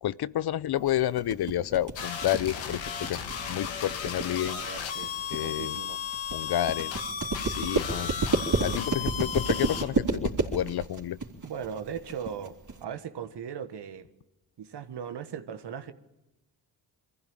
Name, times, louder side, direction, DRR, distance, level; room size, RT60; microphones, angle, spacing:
voice 1, 0.0-3.2 3.5-4.6 5.3-5.8 6.3-6.9 7.5-8.2 8.6-11.2, left 12 dB, 60° left, 0.7 m, -30 dB
sound 1, 0.9-12.8, right 3 dB, 40° right, 3.6 m, -31 dB
sound 2, 2.0-9.8, left 7 dB, 85° left, 1.8 m, -35 dB
voice 2, 4.4-6.0 7.9-8.0 11.4-14.1 14.6-15.9, right 7 dB, 65° right, 1.6 m, -39 dB
23.0 x 15.0 x 9.0 m
supercardioid pair, 55°, 44 cm